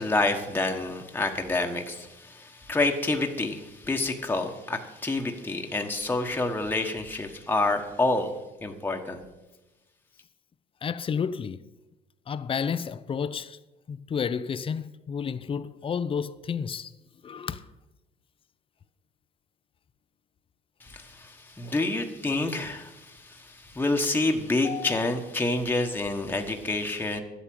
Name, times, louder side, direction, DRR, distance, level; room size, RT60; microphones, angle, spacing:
voice 1, 0.0-8.3 8.6-9.2 20.8-27.2, left 2 dB, 10° left, 1.3 m, -28 dB
voice 2, 10.8-11.6 12.3-13.6 13.9-16.9 17.2-17.6 21.6-21.8 24.6-25.0, left 6 dB, 30° left, 0.6 m, -31 dB
11.5 x 8.3 x 7.6 m
cardioid pair, 110°, 17 cm